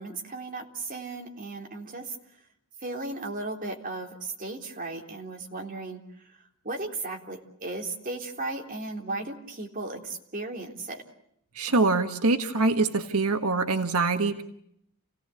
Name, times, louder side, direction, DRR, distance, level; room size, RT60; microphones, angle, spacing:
voice 1, 0.0-2.2 2.8-6.0 6.3-6.4 6.6-11.0, right 2 dB, 40° right, 2 dB, 3.6 m, -36 dB
voice 2, 11.5-14.4, right 3 dB, 85° right, 6 dB, 1.6 m, -24 dB
29.5 x 17.5 x 8.4 m, 0.73 s
head